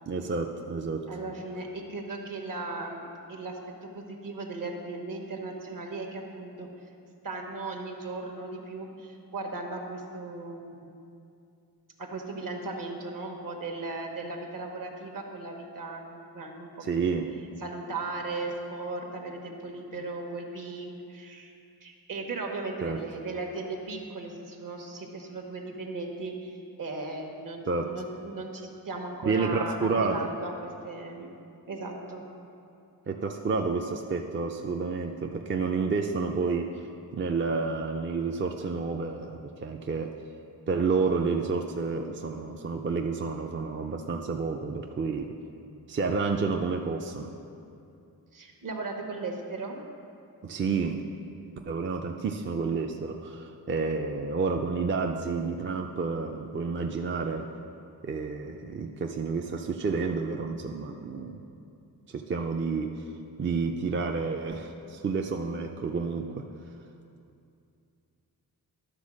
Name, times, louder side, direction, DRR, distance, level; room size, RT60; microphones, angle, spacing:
voice 1, 0.1-1.1 16.8-17.3 22.8-23.0 27.7-27.9 29.2-30.2 33.1-36.8 37.1-40.1 40.7-45.3 45.9-47.3 50.4-51.1 51.7-57.5 58.0-61.4 62.1-63.0 63.4-66.4, right 4 dB, 30° right, 3 dB, 0.4 m, -30 dB
voice 2, 1.1-6.7 7.2-10.9 12.0-17.0 17.6-21.5 21.8-31.3 31.7-32.2 48.3-49.8, right 3 dB, 60° right, 2 dB, 1.2 m, -37 dB
11.5 x 3.9 x 6.3 m, 2.6 s
wide cardioid pair, 90°, 37 cm